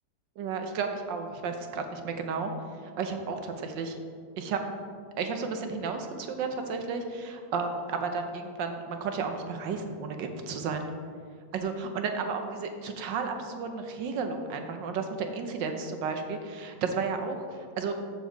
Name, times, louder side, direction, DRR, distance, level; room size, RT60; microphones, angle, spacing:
voice 1, 0.4-2.5 3.0-4.0 4.4-4.6 5.2-10.8 11.5-17.9, right 5 dB, 85° right, 5 dB, 1.6 m, -33 dB
13.5 x 4.6 x 4.6 m, 2.1 s
omnidirectional pair, 1.9 m